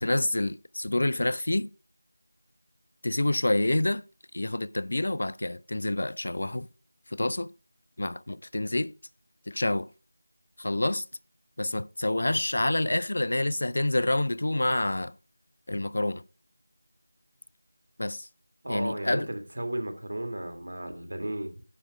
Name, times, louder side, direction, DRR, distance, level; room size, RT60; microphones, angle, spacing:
voice 1, 0.0-1.7 3.0-4.0 4.3-6.7 7.1-7.5 8.0-8.9 9.5-9.9 10.6-11.0 11.6-15.1 15.7-16.2 18.0-18.3 18.7-19.3, left 1 dB, 55° left, 0.4 m, -27 dB
voice 2, 18.6-21.6, right 1 dB, 60° right, 2.3 m, -34 dB
9.8 x 6.5 x 5.0 m
figure-of-eight pair, 170°, 0 cm